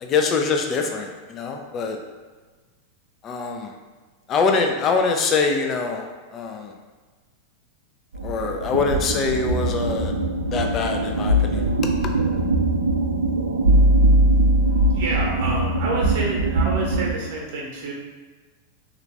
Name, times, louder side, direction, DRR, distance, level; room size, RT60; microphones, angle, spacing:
voice 1, 0.0-2.0 3.2-3.7 4.3-6.0 6.3-6.7 8.2-10.1 10.5-11.7, left 4 dB, 30° left, 3 dB, 0.4 m, -24 dB
sound 1, 8.1-17.1, right 1 dB, 65° right, 0.4 m, -21 dB
voice 2, 14.9-17.9, right 2 dB, 50° right, -2 dB, 0.9 m, -28 dB
3.3 x 2.5 x 3.1 m, 1.3 s
figure-of-eight pair, 90°, 0 cm